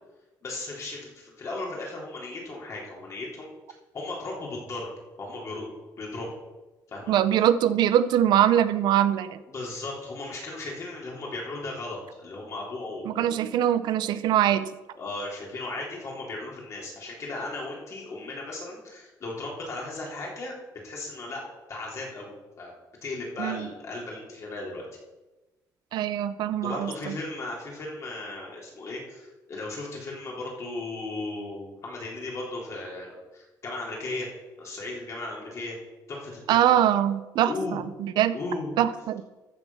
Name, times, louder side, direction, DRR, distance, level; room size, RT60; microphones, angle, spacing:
voice 1, 0.4-3.5 3.9-4.9 5.2-6.3 6.9-7.1 9.5-13.3 14.9-20.6 20.8-21.4 21.7-22.8 23.0-24.8 26.6-34.3 34.6-35.8 36.1-36.6 37.5-37.8 38.3-38.8, left 2 dB, 40° left, -2 dB, 3.7 m, -36 dB
voice 2, 7.1-9.4 13.1-14.7 23.4-23.7 25.9-27.2 36.5-38.3 38.8-39.2, right 11 dB, 80° right, 13 dB, 0.6 m, -23 dB
13.5 x 7.2 x 5.6 m, 1.1 s
cardioid pair, 140°, 7 cm